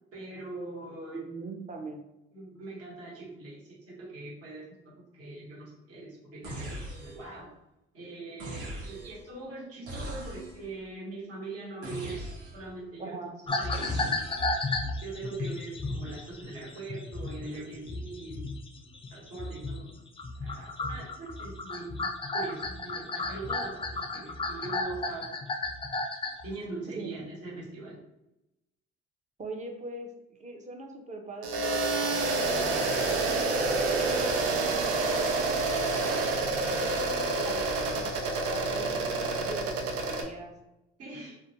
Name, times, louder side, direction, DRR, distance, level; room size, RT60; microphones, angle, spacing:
voice 1, 0.1-1.2 2.3-7.5 7.9-13.2 13.5-14.2 15.0-18.4 19.1-20.0 20.4-25.4 26.4-28.0 41.0-41.3, right 3 dB, 50° right, -4 dB, 1.2 m, -42 dB
voice 2, 1.1-2.0 13.0-13.3 27.0-27.1 29.4-30.1 30.4-35.7 35.9-37.0 37.3-40.5, right 2 dB, 25° right, 3 dB, 0.6 m, -42 dB
sound 1, 6.4-7.4 8.4-9.3 9.9-10.7 11.8-12.7 13.7-14.6, right 1 dB, 70° right, 0.9 m, -40 dB
sound 2, 13.5-19.9 20.2-26.5, left 2 dB, 20° left, 0.3 m, -33 dB
sound 3, 31.4-40.2, right 3 dB, 90° right, 0.5 m, -28 dB
2.4 x 2.1 x 2.7 m, 0.91 s
hypercardioid pair, 60°, 30 cm